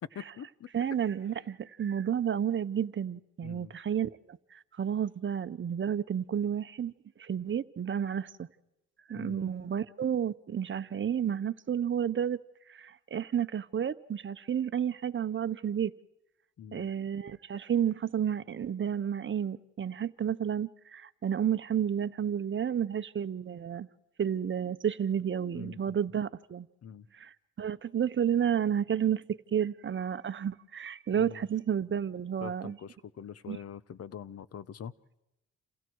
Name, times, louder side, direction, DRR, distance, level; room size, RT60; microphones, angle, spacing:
voice 1, 0.0-0.7 3.4-3.7 9.1-9.5 16.6-16.9 25.5-26.0 26.8-27.1 31.1-31.4 32.4-34.9, left 8 dB, 55° left, 18 dB, 1.1 m, -44 dB
voice 2, 0.7-6.9 7.2-8.5 9.1-12.4 12.7-15.9 16.7-23.9 24.2-26.7 27.1-29.2 29.5-32.8 33.5-33.6, right 8 dB, 40° right, 14 dB, 1.0 m, -31 dB
29.0 x 29.0 x 4.7 m, 0.91 s
cardioid pair, 90°, 30 cm